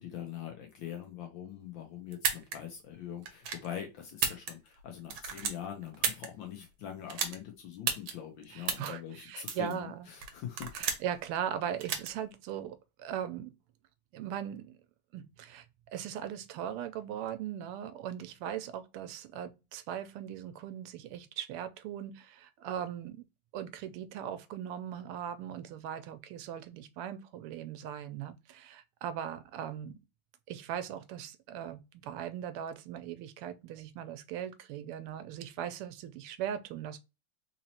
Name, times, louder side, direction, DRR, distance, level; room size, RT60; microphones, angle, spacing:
voice 1, 0.0-10.7, left 9 dB, 70° left, 1.4 m, -43 dB
sound 1, 2.1-2.6 3.2-3.7 4.1-4.8 5.1-6.3 7.1-7.4 7.9-8.1 8.7-8.9 9.5-9.7 10.2-11.1 11.8-12.1, right 7 dB, 70° right, 1.5 m, -32 dB
voice 2, 8.5-10.1 10.7-13.5 14.1-14.8 15.1-15.6 15.9-23.2 23.5-30.0 30.5-37.0, right 10 dB, 90° right, 1.5 m, -39 dB
4.0 x 2.9 x 2.8 m
omnidirectional pair, 2.4 m